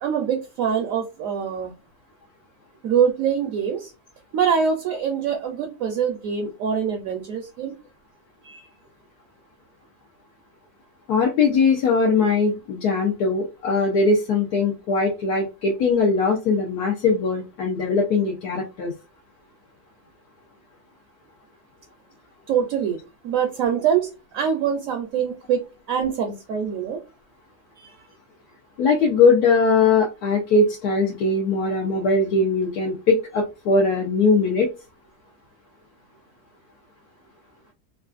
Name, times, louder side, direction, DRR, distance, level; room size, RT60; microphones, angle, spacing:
voice 1, 0.0-1.7 2.8-3.9 4.3-7.7 8.4-8.7 22.5-23.0 23.2-27.0 27.8-28.1, right 7 dB, 70° right, 3 dB, 0.9 m, -24 dB
voice 2, 11.1-18.9 28.8-34.7, left 4 dB, 85° left, -2 dB, 1.2 m, -20 dB
3.2 x 2.4 x 2.3 m, 0.28 s
omnidirectional pair, 1.6 m